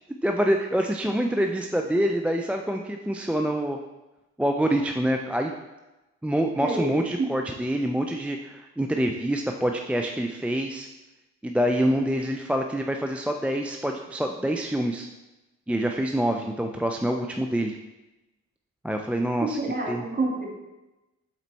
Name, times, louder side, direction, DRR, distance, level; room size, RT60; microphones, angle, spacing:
voice 1, 0.2-3.8 4.4-5.5 6.2-10.9 11.4-15.1 15.7-17.8 18.8-19.6 19.9-20.0, right 1 dB, 5° right, 3 dB, 0.4 m, -26 dB
voice 2, 6.6-7.4 19.6-20.5, right 2 dB, 30° right, -1 dB, 1.7 m, -28 dB
7.3 x 4.4 x 4.1 m, 1.0 s
cardioid pair, 90°, 30 cm